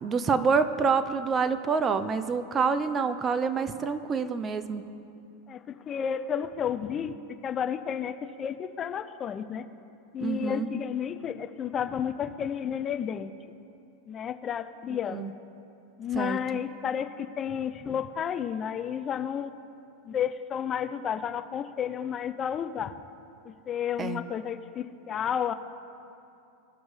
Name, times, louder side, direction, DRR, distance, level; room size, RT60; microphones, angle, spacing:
voice 1, 0.0-4.8 10.2-10.7 15.1-15.3 16.1-16.4 24.0-24.2, right 5 dB, 25° right, 11 dB, 0.5 m, -27 dB
voice 2, 5.5-7.2 7.4-9.7 10.1-13.3 14.1-15.2 16.0-19.5 20.1-22.9 23.5-25.5, left 8 dB, 30° left, 11 dB, 0.4 m, -31 dB
18.5 x 6.4 x 3.2 m, 2.8 s
hypercardioid pair, 120°, 0 cm